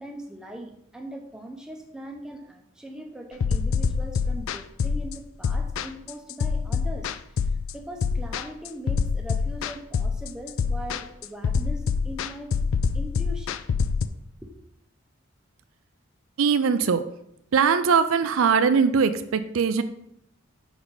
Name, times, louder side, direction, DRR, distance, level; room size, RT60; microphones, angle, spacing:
voice 1, 0.0-12.5 12.9-13.6 14.4-14.5, right 1 dB, 5° right, 2 dB, 0.7 m, -40 dB
sound 1, 3.4-14.1, left 5 dB, 70° left, 0.3 m, -26 dB
voice 2, 16.4-17.1 17.5-19.8, right 6 dB, 80° right, 11 dB, 0.4 m, -21 dB
6.2 x 4.0 x 4.7 m, 0.75 s
head